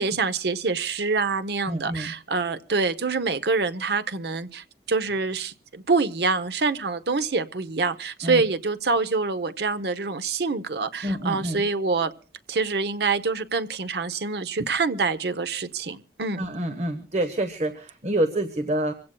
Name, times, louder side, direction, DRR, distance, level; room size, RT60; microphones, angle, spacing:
voice 1, 0.0-12.1 12.5-16.4, right 4 dB, 65° right, 0.8 m, -26 dB
voice 2, 1.6-2.1 8.2-8.4 11.0-11.7 16.4-18.9, right 1 dB, 40° right, 0.9 m, -27 dB
25.5 x 16.5 x 2.2 m
head